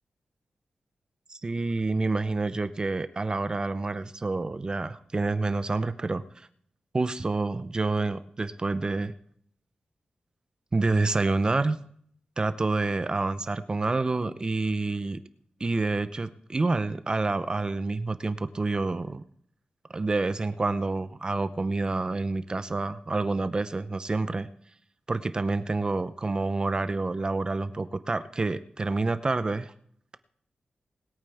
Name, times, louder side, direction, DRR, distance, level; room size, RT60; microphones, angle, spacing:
voice 1, 1.3-6.5 6.9-9.1 10.7-11.8 12.4-15.2 15.6-19.2 19.9-24.5 25.1-29.7, right 3 dB, 30° right, 13 dB, 0.6 m, -28 dB
21.0 x 8.9 x 3.4 m, 0.62 s
wide cardioid pair, 130°, 3 cm